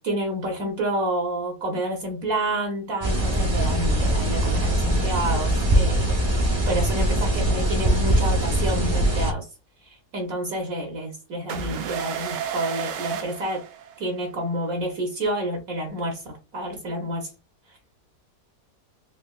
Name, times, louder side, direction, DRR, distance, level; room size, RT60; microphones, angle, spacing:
voice 1, 0.0-9.4 9.8-13.6 14.0-17.3, right 1 dB, 60° right, 1.2 m, -29 dB
sound 1, 3.0-9.3, right 1 dB, 30° right, 0.5 m, -22 dB
sound 2, 11.5-14.3, right 7 dB, 90° right, 1.2 m, -32 dB
3.9 x 2.9 x 2.3 m
omnidirectional pair, 1.8 m